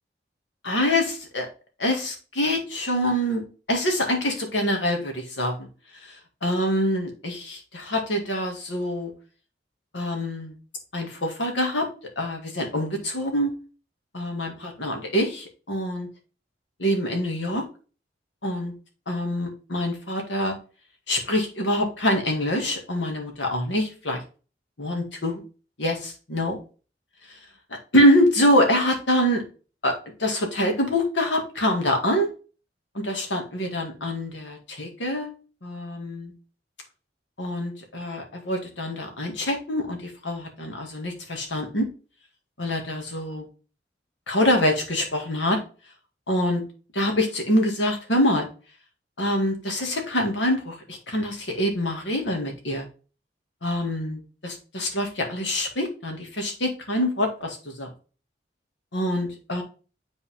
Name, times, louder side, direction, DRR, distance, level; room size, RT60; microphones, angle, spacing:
voice 1, 0.6-1.5 1.8-3.4 3.7-5.7 6.4-9.1 9.9-10.5 10.9-11.9 12.2-13.5 14.1-16.1 16.8-17.6 18.4-18.7 19.1-20.6 21.1-24.2 24.8-25.4 25.8-26.6 27.9-29.4 29.8-32.3 32.9-35.3 35.6-36.3 37.4-41.9 42.6-43.5 44.3-45.6 46.3-46.6 46.9-48.5 49.2-52.9 53.6-57.9 58.9-59.6, left 1 dB, 90° left, 3 dB, 2.1 m, -25 dB
8.0 x 4.1 x 3.5 m, 0.35 s
head